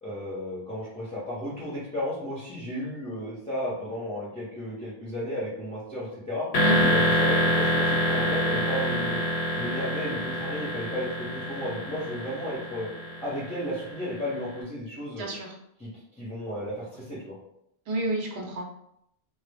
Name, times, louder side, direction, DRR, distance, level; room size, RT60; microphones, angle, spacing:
voice 1, 0.0-6.5 6.9-9.2 9.6-12.9 13.2-15.3 15.8-15.9 16.2-17.4, equal, 10° left, -9 dB, 0.6 m, -34 dB
sound 1, 6.5-14.3, equal, 90° left, 0.9 m, -26 dB
voice 2, 15.2-15.5 17.9-18.8, right 1 dB, 90° right, 0 dB, 0.9 m, -29 dB
2.1 x 2.0 x 3.3 m, 0.76 s
omnidirectional pair, 1.1 m